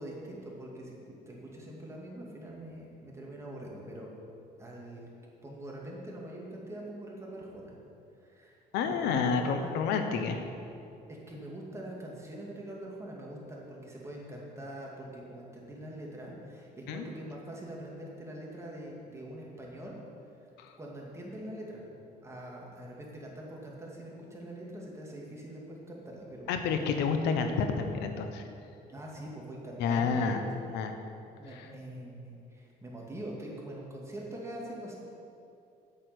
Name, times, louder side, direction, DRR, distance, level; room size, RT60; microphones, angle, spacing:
voice 1, 0.0-4.1 4.6-5.1 5.4-7.7 8.2-8.6 8.8-9.8 11.1-20.0 20.8-21.8 22.2-27.3 28.9-30.5 31.4-34.9, right 1 dB, 15° right, -3 dB, 2.4 m, -44 dB
voice 2, 8.7-10.4 16.9-17.0 20.6-20.7 26.5-28.4 29.8-30.4 30.7-30.9 31.6-31.7, left 5 dB, 90° left, 6 dB, 0.9 m, -29 dB
8.5 x 6.7 x 8.0 m, 2.6 s
cardioid pair, 110°, 17 cm